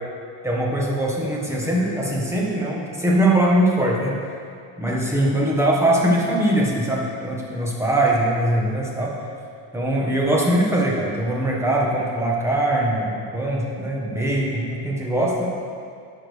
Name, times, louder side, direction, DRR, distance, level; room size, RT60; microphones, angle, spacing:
voice 1, 0.4-4.2 4.8-9.1 9.7-15.5, right 1 dB, 5° right, -3 dB, 1.3 m, -21 dB
10.5 x 6.6 x 3.4 m, 2.3 s
cardioid pair, 135°, 43 cm